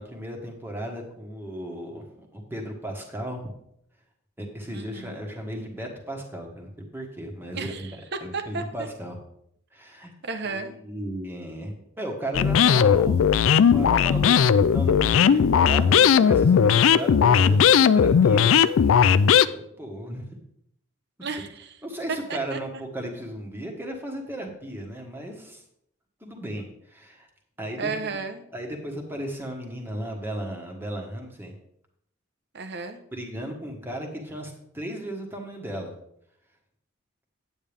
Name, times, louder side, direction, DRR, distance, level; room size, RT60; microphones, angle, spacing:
voice 1, 0.0-2.1 2.3-3.4 4.4-9.2 9.7-10.1 10.4-18.9 19.5-20.4 21.8-25.6 26.2-27.3 27.6-28.3 28.5-31.5 33.1-35.9, right 1 dB, 10° right, 1 dB, 1.4 m, -35 dB
voice 2, 4.7-5.2 7.5-7.9 8.3-8.6 10.2-10.7 21.2-21.8 22.3-22.6 27.8-28.4 32.5-33.0, right 4 dB, 55° right, 8 dB, 0.9 m, -33 dB
sound 1, 12.3-19.5, left 7 dB, 75° left, 0.3 m, -18 dB
9.2 x 8.6 x 3.5 m, 0.73 s
head